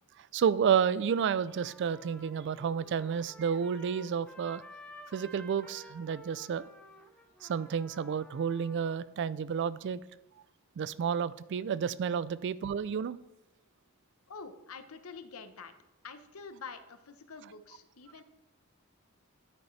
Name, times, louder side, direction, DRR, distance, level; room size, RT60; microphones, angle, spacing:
voice 1, 0.3-4.6 5.1-6.7 7.4-10.0 10.8-13.2, right 7 dB, 55° right, 18 dB, 0.3 m, -30 dB
Trumpet, 1.3-9.0, equal, 5° left, 0.7 m, -53 dB
voice 2, 14.3-15.7 16.0-18.2, left 5 dB, 75° left, 10 dB, 0.8 m, -47 dB
9.6 x 8.7 x 3.2 m, 0.90 s
head